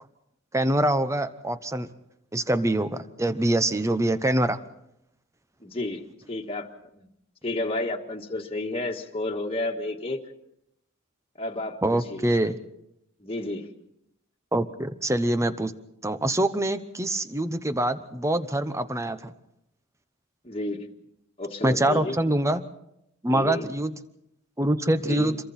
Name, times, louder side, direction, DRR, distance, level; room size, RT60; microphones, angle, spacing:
voice 1, 0.5-1.9 2.3-4.6 11.8-12.6 14.5-15.7 16.0-19.3 21.6-22.6 23.2-23.9 24.6-25.4, right 1 dB, 15° right, 11 dB, 0.9 m, -24 dB
voice 2, 5.6-6.7 6.9-7.1 7.4-10.2 11.4-12.3 13.2-13.7 20.4-20.9 21.4-22.2 23.3-23.7 25.1-25.3, left 2 dB, 25° left, 0 dB, 1.7 m, -31 dB
28.0 x 23.0 x 4.3 m, 0.81 s
head